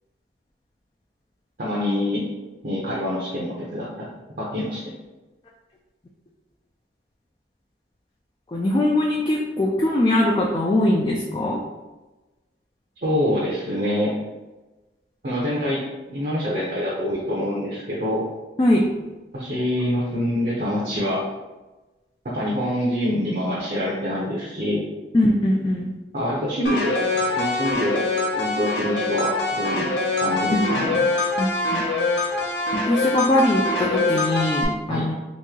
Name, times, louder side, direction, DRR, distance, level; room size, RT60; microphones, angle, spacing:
voice 1, 1.6-2.3 2.6-4.1 4.4-4.9 13.0-14.1 15.2-18.2 19.3-21.2 22.2-24.8 26.1-28.0 28.3-29.9 30.2-31.0 34.9-35.1, equal, 55° right, -7 dB, 0.7 m, -25 dB
voice 2, 8.5-11.6 18.6-18.8 25.1-25.9 30.5-30.6 31.4-31.8 32.7-35.1, left 1 dB, 25° left, -2 dB, 0.3 m, -21 dB
sound 1, 26.7-34.7, left 2 dB, 80° left, 0.7 m, -24 dB
3.0 x 2.7 x 3.6 m, 1.1 s
head